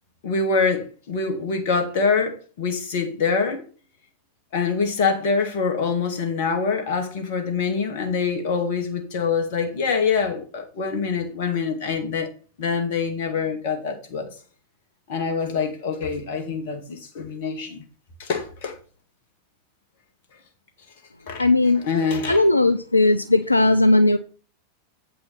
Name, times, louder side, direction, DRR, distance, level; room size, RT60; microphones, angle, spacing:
voice 1, 0.2-3.6 4.5-12.3 12.6-14.3 15.1-17.8 18.2-18.8 21.3-21.5 21.8-22.4, left 5 dB, 50° left, 2.2 m, -25 dB
voice 2, 21.4-21.8 22.3-24.2, left 2 dB, 85° left, 0.4 m, -17 dB
8.5 x 5.5 x 5.7 m
figure-of-eight pair, 90°, 0 cm